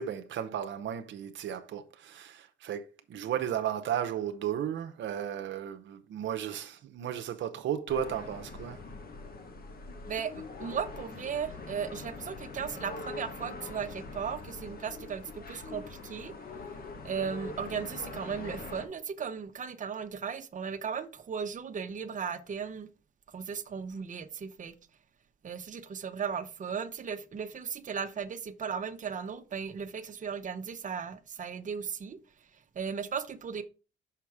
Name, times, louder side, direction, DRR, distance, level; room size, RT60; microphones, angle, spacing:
voice 1, 0.0-8.8, right 9 dB, 70° right, 0.8 m, -34 dB
sound 1, 7.9-18.9, left 3 dB, 50° left, 1.5 m, -43 dB
voice 2, 10.1-16.3 17.0-22.9 23.3-24.7 25.4-32.2 32.5-33.6, right 6 dB, 40° right, 0.9 m, -36 dB
5.8 x 5.8 x 4.7 m
cardioid pair, 90°, 20 cm